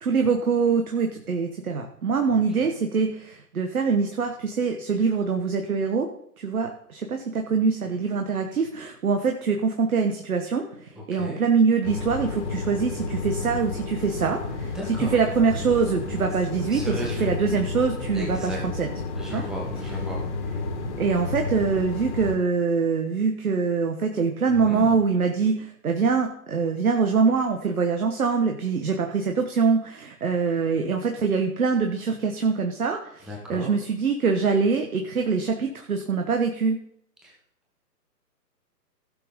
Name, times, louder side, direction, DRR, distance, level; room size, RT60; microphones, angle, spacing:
voice 1, 0.0-6.1 6.4-18.9 19.3-19.4 21.0-36.8, right 5 dB, 60° right, 4 dB, 1.4 m, -24 dB
sound 1, 11.8-22.3, left 3 dB, 45° left, 2.1 m, -31 dB
voice 2, 14.7-15.2 16.6-17.3 18.1-18.6 19.1-20.2 24.5-25.0 33.3-33.7 37.2-37.3, left 1 dB, ahead, -2 dB, 0.7 m, -34 dB
16.5 x 6.4 x 3.7 m, 0.69 s
figure-of-eight pair, 135°, 50 cm